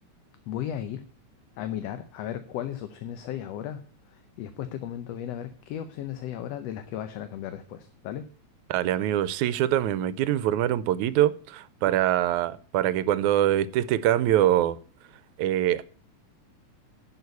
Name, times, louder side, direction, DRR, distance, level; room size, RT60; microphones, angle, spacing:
voice 1, 0.5-1.0 1.6-8.2, left 10 dB, 70° left, 1.8 m, -35 dB
voice 2, 8.7-14.8 15.4-15.8, right 12 dB, 85° right, 2.1 m, -24 dB
11.0 x 6.9 x 8.1 m
omnidirectional pair, 3.3 m